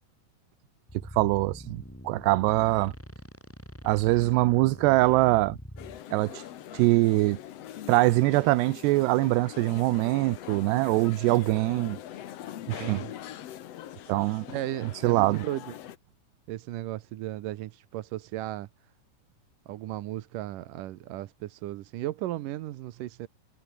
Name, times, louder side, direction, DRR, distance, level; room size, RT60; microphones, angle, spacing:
sound 1, 0.9-6.0, equal, 5° left, 7.7 m, -45 dB
voice 1, 1.1-2.9 3.8-5.6 6.1-6.4 6.7-7.4 7.9-12.0 12.7-13.0 14.1-14.4 15.0-15.4, right 19 dB, 90° right, 2.9 m, -23 dB
sound 2, 5.8-16.0, left 11 dB, 85° left, 1.4 m, -43 dB
voice 2, 12.7-13.1 14.5-15.7 16.5-18.7 19.7-23.3, right 15 dB, 70° right, 2.2 m, -35 dB
omnidirectional pair, 4.7 m